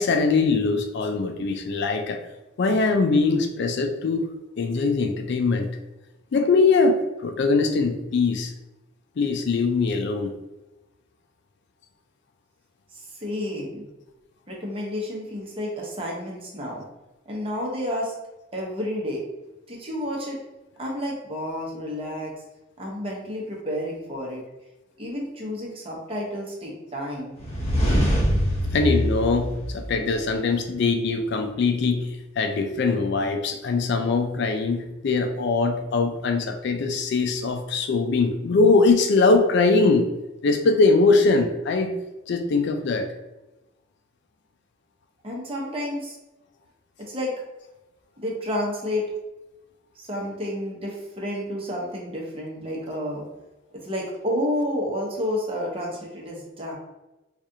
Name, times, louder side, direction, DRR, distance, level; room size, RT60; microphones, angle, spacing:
voice 1, 0.0-2.2 2.6-4.2 4.6-5.7 6.3-8.5 9.2-10.3 28.7-32.1 32.4-40.1 40.4-42.0 42.3-43.1, left 3 dB, 55° left, 5 dB, 0.4 m, -22 dB
voice 2, 12.9-13.9 14.5-16.8 17.3-18.1 18.5-19.2 19.7-20.4 20.8-22.3 22.8-24.4 25.0-27.4 45.2-46.2 47.0-47.3 48.2-49.1 50.0-53.2 53.7-56.7, left 1 dB, 30° right, -3 dB, 0.9 m, -30 dB
sound 1, 27.4-30.3, equal, 30° left, 0.8 m, -24 dB
4.7 x 2.4 x 2.7 m, 1.0 s
head